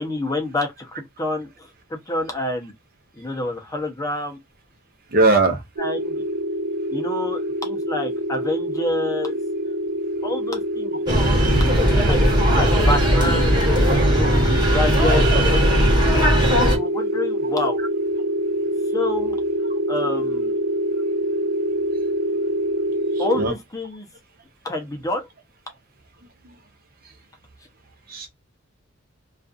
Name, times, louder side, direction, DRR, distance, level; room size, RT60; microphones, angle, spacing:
voice 1, 0.0-2.7 3.1-4.4 5.8-6.2 6.9-9.4 10.2-11.0 11.9-13.6 14.1-17.8 18.9-19.4 19.9-20.5 23.2-24.1 24.6-25.3, left 2 dB, 15° left, 0.7 m, -28 dB
voice 2, 5.1-5.6 12.6-12.7 17.4-17.5 23.1-23.5 28.1-28.3, right 3 dB, 50° right, 0.7 m, -20 dB
sound 1, 5.8-23.5, equal, 80° right, 0.5 m, -25 dB
sound 2, 11.1-16.8, equal, 20° right, 1.1 m, -18 dB
2.4 x 2.4 x 2.4 m
head